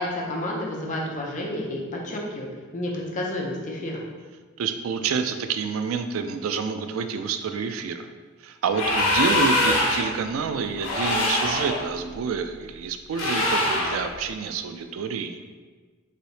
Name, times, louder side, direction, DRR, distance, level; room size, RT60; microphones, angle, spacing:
voice 1, 0.0-2.5 2.7-4.0, left 1 dB, 35° left, -2 dB, 0.6 m, -30 dB
voice 2, 4.6-8.1 8.4-15.4, right 6 dB, 70° right, 8 dB, 0.3 m, -28 dB
sound 1, 8.7-10.2 10.8-11.8 13.1-14.1, left 1 dB, 85° left, 0.9 m, -23 dB
3.3 x 2.7 x 4.0 m, 1.4 s
head